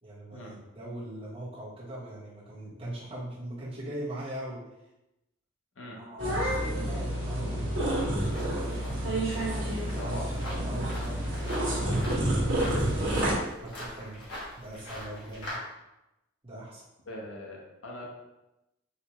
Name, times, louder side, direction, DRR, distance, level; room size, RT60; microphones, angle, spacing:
voice 1, 0.0-4.6 5.9-8.9 9.5-13.3 13.6-14.2 14.5-15.6 16.4-16.9, right 1 dB, 30° right, -8 dB, 1.1 m, -41 dB
sound 1, 6.2-13.3, right 1 dB, 75° right, 0.9 m, -29 dB
sound 2, 8.1-15.6, left 1 dB, 60° left, 1.3 m, -43 dB
voice 2, 17.1-18.1, left 1 dB, 90° left, -2 dB, 0.9 m, -41 dB
4.1 x 2.3 x 3.0 m, 0.93 s
head